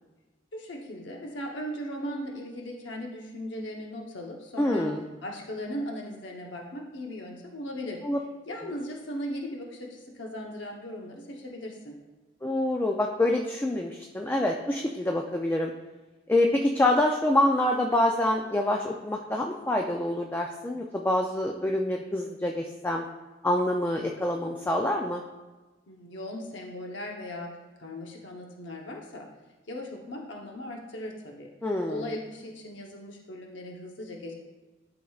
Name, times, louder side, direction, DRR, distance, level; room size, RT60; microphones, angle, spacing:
voice 1, 0.5-4.9 5.2-8.0 8.5-12.0 25.9-27.5 27.8-29.3 29.7-31.5 31.9-34.3, equal, 75° left, 0 dB, 0.9 m, -38 dB
voice 2, 4.6-5.0 8.0-8.2 12.4-15.7 16.3-23.0 23.4-25.2 31.6-32.1, left 1 dB, 10° left, 1 dB, 0.4 m, -26 dB
11.5 x 5.0 x 2.4 m, 1.2 s
head